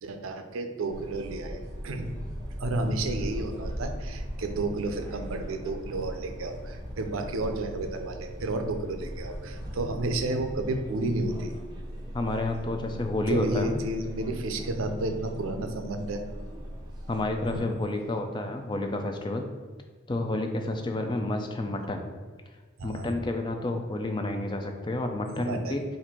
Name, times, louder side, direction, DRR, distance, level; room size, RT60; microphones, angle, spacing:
voice 1, 0.0-2.1 2.6-11.5 13.3-16.6 17.5-17.7 22.8-23.1 25.3-25.8, right 2 dB, 90° right, 6 dB, 0.5 m, -31 dB
sound 1, 0.9-17.6, equal, 20° right, 0.6 m, -39 dB
voice 2, 12.1-13.7 17.1-19.5 20.1-22.0 22.8-25.8, left 2 dB, 25° left, 4 dB, 0.3 m, -30 dB
4.2 x 2.6 x 4.3 m, 1.5 s
head